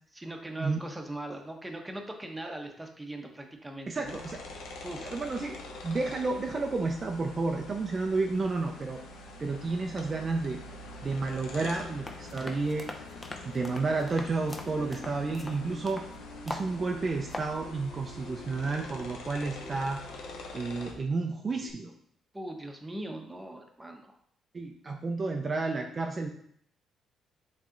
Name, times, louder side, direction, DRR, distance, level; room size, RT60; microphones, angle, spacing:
voice 1, 0.1-4.2 4.5-5.2 22.3-24.2, right 1 dB, 10° right, 3 dB, 1.0 m, -40 dB
voice 2, 3.9-4.4 5.1-5.6 5.8-9.0 9.4-10.6 11.0-13.0 13.4-16.0 16.5-20.0 20.5-21.9 24.5-26.3, right 3 dB, 35° right, 2 dB, 0.6 m, -31 dB
sound 1, 4.0-20.9, left 2 dB, 85° left, 0.9 m, -45 dB
sound 2, 12.0-16.1 16.5-16.7 17.1-17.5, left 2 dB, 20° left, 0.7 m, -41 dB
sound 3, 14.7-21.7, left 1 dB, 40° left, 2.6 m, -51 dB
7.3 x 3.3 x 3.8 m, 0.66 s
cardioid pair, 90°, 0 cm